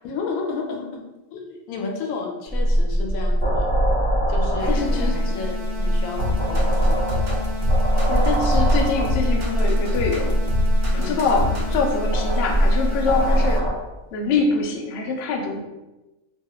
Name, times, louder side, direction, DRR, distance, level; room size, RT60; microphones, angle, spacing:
voice 1, 0.0-1.0 1.3-3.7 4.3-7.0 10.9-11.3 13.3-13.5, left 4 dB, 85° left, 1 dB, 1.0 m, -32 dB
sound 1, 2.5-13.7, right 1 dB, 20° left, 1.2 m, -21 dB
sound 2, 4.6-13.6, left 3 dB, 60° right, 0.8 m, -34 dB
voice 2, 4.7-5.4 8.1-10.3 10.9-13.6 14.1-15.6, left 4 dB, 65° left, 2 dB, 0.6 m, -24 dB
sound 3, 6.2-11.9, left 3 dB, 85° right, 1.1 m, -28 dB
2.9 x 2.3 x 2.9 m, 1.1 s
omnidirectional pair, 1.4 m